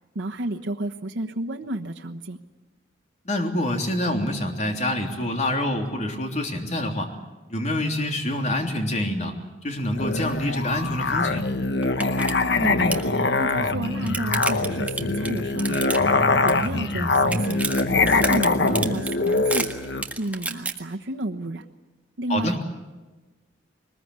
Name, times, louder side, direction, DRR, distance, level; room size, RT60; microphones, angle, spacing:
voice 1, 0.1-2.4 12.6-13.1 13.4-16.0 16.4-17.7 18.1-19.7 20.2-21.6 22.2-22.6, right 1 dB, 85° right, 2 dB, 1.2 m, -31 dB
voice 2, 3.2-7.1 7.5-9.3 9.6-11.5 22.3-22.5, left 1 dB, 40° left, 3 dB, 3.3 m, -26 dB
Musical instrument, 9.9-20.1, left 3 dB, 65° left, 1.2 m, -23 dB
sound 1, 11.4-11.5 11.8-12.3 12.6-13.1 13.7-16.2 16.5-16.9 17.2-20.7, right 3 dB, 10° right, 1.7 m, -30 dB
22.5 x 20.5 x 9.6 m, 1.2 s
head